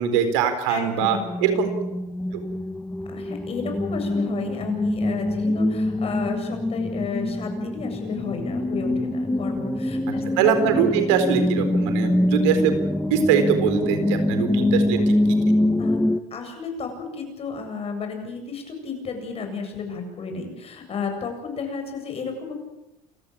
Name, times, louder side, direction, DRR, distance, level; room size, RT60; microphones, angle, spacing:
voice 1, 0.0-1.7 2.3-2.4 10.4-12.7 13.1-15.1, right 7 dB, 90° right, 9 dB, 4.2 m, -22 dB
voice 2, 0.7-1.2 3.1-10.2 15.8-16.0 16.3-22.5, left 5 dB, 40° left, 5 dB, 7.8 m, -32 dB
sound 1, 1.1-16.2, left 1 dB, 10° left, 1.4 m, -24 dB
28.5 x 15.0 x 8.8 m, 0.92 s
supercardioid pair, 100°, 15 cm